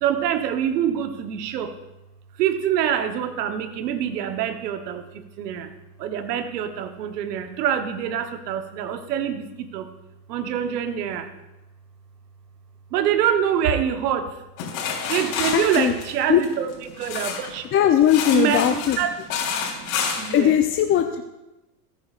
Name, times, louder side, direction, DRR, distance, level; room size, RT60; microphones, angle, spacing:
voice 1, 0.0-1.7 2.4-5.7 6.0-9.9 10.3-11.3 12.9-14.3 15.1-17.7 18.3-19.1 19.4-20.5, right 9 dB, 85° right, 8 dB, 1.1 m, -25 dB
sound 1, 14.6-17.6 18.0-20.4, left 6 dB, 65° left, 3.7 m, -29 dB
voice 2, 15.5-15.9 16.3-16.4 17.7-19.0 20.3-21.2, left 10 dB, 30° left, 5 dB, 0.5 m, -19 dB
19.0 x 9.6 x 2.5 m, 1.0 s
supercardioid pair, 115°, 47 cm